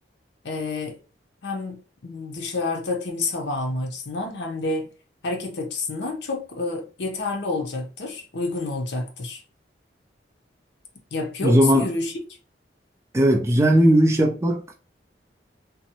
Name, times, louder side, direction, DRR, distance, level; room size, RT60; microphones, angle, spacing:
voice 1, 0.4-1.0 1.4-4.9 5.2-9.4 11.1-12.1, left 3 dB, 70° left, 0.6 m, -29 dB
voice 2, 11.4-11.9 13.1-14.8, right 1 dB, 15° right, 0.3 m, -18 dB
2.7 x 2.0 x 2.7 m
head